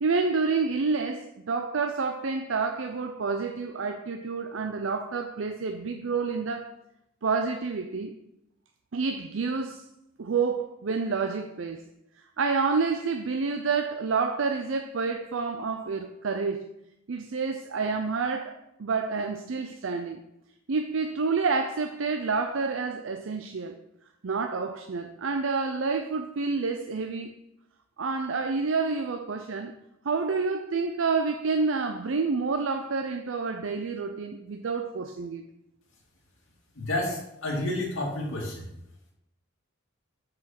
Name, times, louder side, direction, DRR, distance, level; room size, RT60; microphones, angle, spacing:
voice 1, 0.0-6.7 7.2-8.1 8.9-9.8 10.2-11.9 12.4-16.6 17.1-20.2 20.7-23.8 24.2-27.3 28.0-29.7 30.0-35.4, right 4 dB, 65° right, 0.5 m, -28 dB
voice 2, 36.7-38.7, left 1 dB, 80° left, 2.4 m, -30 dB
6.5 x 6.4 x 5.8 m
head